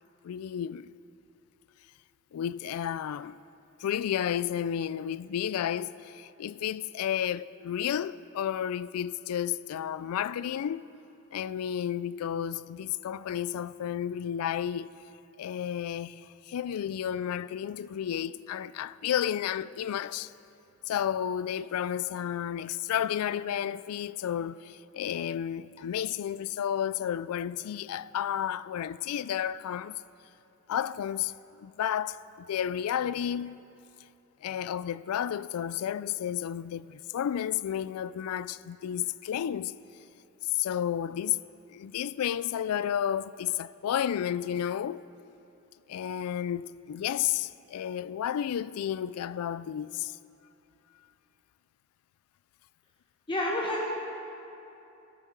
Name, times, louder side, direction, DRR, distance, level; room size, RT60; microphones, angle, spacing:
voice 1, 0.2-0.9 2.3-3.4 3.8-10.9 11.3-14.9 15.4-20.3 20.9-30.0 30.7-31.3 31.6-33.6 34.4-39.8 40.5-41.4 41.7-45.0 45.9-50.1, left 9 dB, 85° left, 0.3 m, -32 dB
voice 2, 53.3-53.9, left 1 dB, 20° left, 1.1 m, -29 dB
17.0 x 10.5 x 4.5 m
head